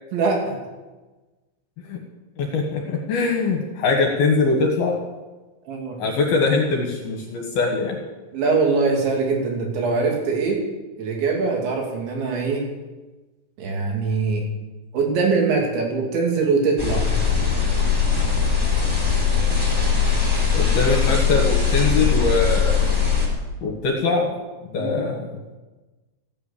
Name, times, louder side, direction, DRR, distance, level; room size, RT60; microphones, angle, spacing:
voice 1, 0.1-0.6 5.7-6.0 8.3-10.6 11.0-12.6 13.6-14.4 14.9-17.1 24.8-25.1, right 4 dB, 65° right, 0 dB, 4.8 m, -22 dB
voice 2, 2.4-5.0 6.0-8.0 20.5-22.9 23.6-24.3 24.7-25.3, left 3 dB, 60° left, 1 dB, 2.8 m, -22 dB
sound 1, 16.8-23.3, left 6 dB, 5° right, 2.9 m, -20 dB
15.5 x 9.8 x 8.6 m, 1.2 s
omnidirectional pair, 5.9 m